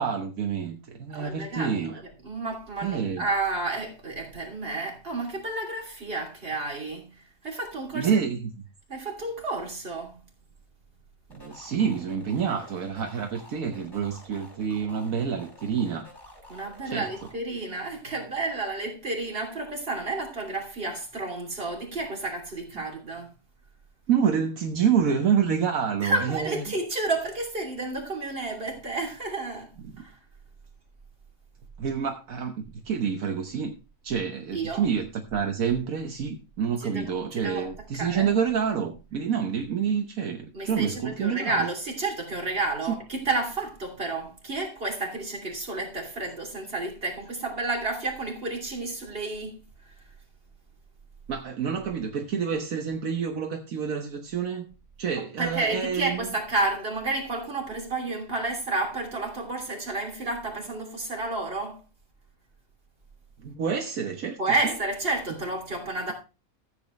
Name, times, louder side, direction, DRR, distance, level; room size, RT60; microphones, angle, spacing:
voice 1, 0.0-2.0 2.8-3.3 7.9-8.5 11.3-16.1 16.8-17.1 24.1-26.6 29.8-29.9 31.8-33.7 34.0-41.7 42.9-43.0 51.3-54.7 55.0-56.3 63.4-64.7, right 7 dB, 75° right, 1.5 m, -28 dB
voice 2, 1.1-1.8 2.2-8.3 8.9-10.2 16.5-23.3 26.0-29.7 30.0-30.2 34.5-34.8 36.8-37.1 37.4-38.3 40.5-49.6 55.4-61.8 64.4-66.1, right 2 dB, 40° right, 3.2 m, -31 dB
sound 1, 11.3-17.3, left 1 dB, 35° left, 5.8 m, -50 dB
14.5 x 8.2 x 3.1 m
omnidirectional pair, 1.5 m